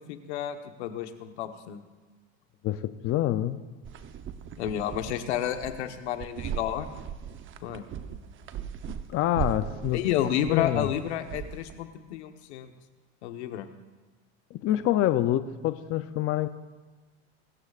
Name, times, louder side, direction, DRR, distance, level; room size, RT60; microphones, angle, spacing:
voice 1, 0.0-1.8 4.6-6.9 7.6-7.8 9.9-12.7 13.2-13.7, left 10 dB, 85° left, 7 dB, 1.2 m, -31 dB
voice 2, 2.6-3.6 8.9-10.0 10.5-10.9 14.5-16.5, left 13 dB, 40° left, 11 dB, 0.6 m, -26 dB
sound 1, 3.8-11.8, right 8 dB, 35° right, 0.9 m, -38 dB
25.5 x 13.5 x 2.5 m, 1.3 s
supercardioid pair, 120°, 33 cm